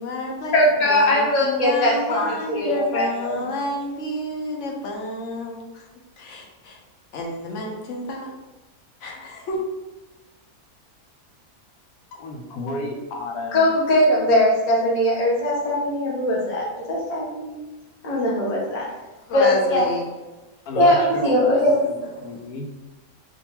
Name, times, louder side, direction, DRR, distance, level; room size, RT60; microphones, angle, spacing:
voice 1, 0.0-5.8 6.2-6.8 7.1-8.3 9.0-9.6 19.3-20.0, left 1 dB, 60° left, 0 dB, 0.9 m, -30 dB
voice 2, 0.5-3.5 13.5-17.6 18.0-18.9 19.3-19.8 20.7-21.7 22.1-22.2, left 1 dB, 30° left, -5 dB, 0.8 m, -20 dB
voice 3, 12.1-13.7 20.7-22.7, left 2 dB, 85° left, 1 dB, 1.1 m, -33 dB
3.7 x 2.6 x 2.8 m, 1.1 s
omnidirectional pair, 1.6 m